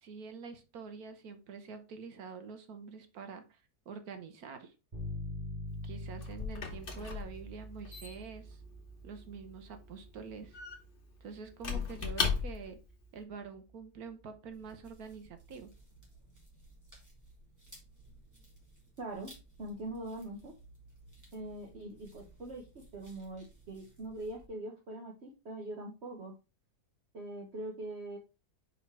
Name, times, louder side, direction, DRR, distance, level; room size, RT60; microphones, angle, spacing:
voice 1, 0.0-3.6 3.9-4.7 5.8-8.6 9.0-10.6 11.2-12.8 13.1-15.7, right 5 dB, 70° right, 8 dB, 1.4 m, -46 dB
sound 1, 4.9-14.8, left 1 dB, 30° right, 2.3 m, -46 dB
Squeak / Wood, 5.7-12.9, left 5 dB, 40° left, 1.2 m, -38 dB
sound 2, 14.5-24.5, right 2 dB, 10° right, 2.4 m, -58 dB
voice 2, 19.0-19.3 19.6-20.5 21.3-26.3 27.1-28.2, right 1 dB, 50° right, 1 dB, 1.2 m, -42 dB
4.9 x 4.6 x 4.5 m, 0.29 s
omnidirectional pair, 1.7 m